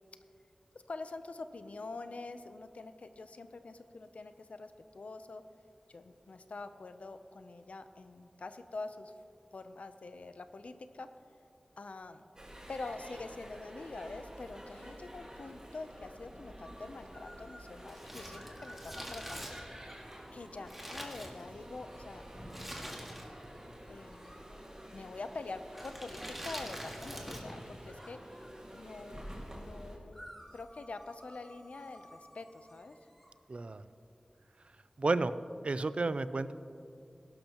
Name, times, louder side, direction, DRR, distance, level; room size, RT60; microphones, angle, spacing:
voice 1, 0.9-5.4 5.9-9.1 9.5-11.1 11.8-12.3 12.7-19.9 20.3-22.2 22.6-22.7 23.9-24.3 24.9-28.5 28.7-29.2 29.5-30.2 30.5-33.0, left 3 dB, 85° left, 9 dB, 0.6 m, -45 dB
sound 1, 12.4-30.0, equal, 30° right, 2.0 m, -49 dB
sound 2, 17.1-17.8 18.3-21.1 21.9-24.5 25.7-29.2 30.1-33.3, equal, 5° left, 2.1 m, -56 dB
Crumpling crinkling, 17.8-21.8 22.5-23.5 23.8-23.9 24.7-25.0 25.7-27.6 27.9-28.0, equal, 10° right, 1.9 m, -45 dB
voice 2, 33.5-33.8 35.0-35.3 35.6-36.5, right 3 dB, 60° right, 14 dB, 0.4 m, -31 dB
17.0 x 12.0 x 3.0 m, 2.5 s
wide cardioid pair, 70°, 2 cm